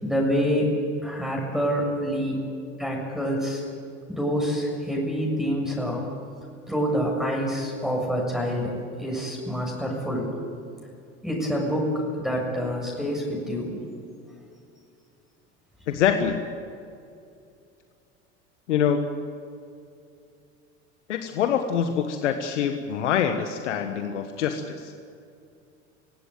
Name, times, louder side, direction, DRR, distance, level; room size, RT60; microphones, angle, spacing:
voice 1, 0.0-2.5 2.8-3.6 4.1-6.0 6.7-10.3 11.2-13.8, equal, ahead, -1 dB, 7.0 m, -27 dB
voice 2, 15.9-16.4 18.7-19.0 21.1-24.9, left 8 dB, 80° left, 7 dB, 1.5 m, -25 dB
25.5 x 16.5 x 9.3 m, 2.5 s
hypercardioid pair, 80°, 35 cm